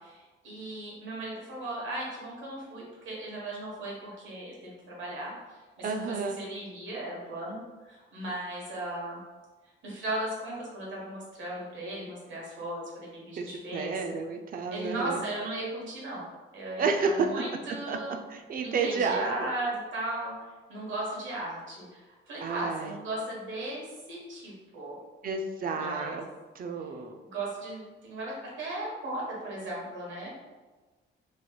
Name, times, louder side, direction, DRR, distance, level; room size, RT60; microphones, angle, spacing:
voice 1, 0.0-9.2 9.8-14.0 14.7-16.3 16.5-18.2 18.6-20.3 20.7-23.8 24.1-25.0 25.7-26.2 27.2-30.4, right 1 dB, 75° right, -4 dB, 1.2 m, -37 dB
voice 2, 5.8-6.4 13.4-15.2 16.8-17.4 17.9-18.0 18.3-19.5 22.4-22.9 25.2-26.2 26.6-27.2, right 4 dB, 45° right, 4 dB, 0.4 m, -30 dB
3.1 x 2.9 x 2.3 m, 1.3 s
cardioid pair, 90°, 20 cm